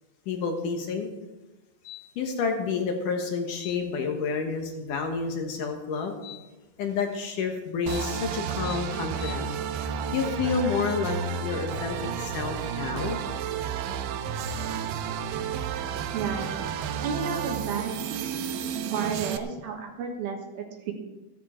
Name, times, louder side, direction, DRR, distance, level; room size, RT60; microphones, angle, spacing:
voice 1, 0.3-1.1 1.8-6.4 6.8-9.6 10.1-13.2, left 5 dB, 65° left, 4 dB, 2.2 m, -29 dB
sound 1, 7.9-19.4, right 7 dB, 90° right, 2.0 m, -31 dB
voice 2, 16.1-16.5 17.0-18.2 18.9-20.9, right 5 dB, 65° right, 2 dB, 2.9 m, -32 dB
15.0 x 14.5 x 4.4 m, 1.1 s
omnidirectional pair, 5.1 m